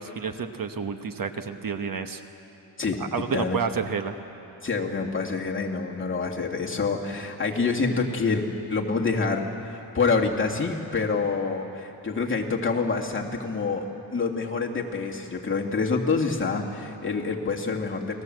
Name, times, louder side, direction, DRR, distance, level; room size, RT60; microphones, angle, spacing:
voice 1, 0.0-2.2 3.0-4.2, right 6 dB, 55° right, 7 dB, 1.2 m, -30 dB
voice 2, 2.8-3.6 4.6-13.9 14.1-18.2, left 4 dB, 30° left, -1 dB, 2.4 m, -27 dB
29.0 x 20.5 x 7.8 m, 3.0 s
wide cardioid pair, 125°, 41 cm